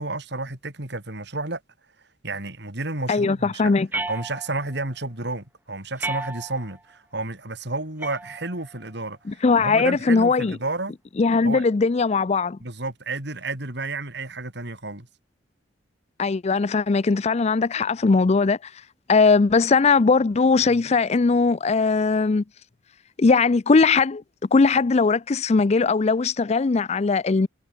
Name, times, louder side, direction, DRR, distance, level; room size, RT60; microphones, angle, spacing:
voice 1, 0.0-1.6 2.2-3.7 4.1-10.9 11.4-11.6 12.6-15.1, right 2 dB, 60° right, 4.2 m, -31 dB
voice 2, 3.1-3.9 9.3-10.6 11.2-12.6 16.2-18.7 19.1-22.4 23.2-24.2 24.5-27.5, left 4 dB, 35° left, 0.4 m, -19 dB
sound 1, 3.9-4.8 6.0-6.8 8.0-8.8, right 2 dB, 10° right, 0.9 m, -33 dB
head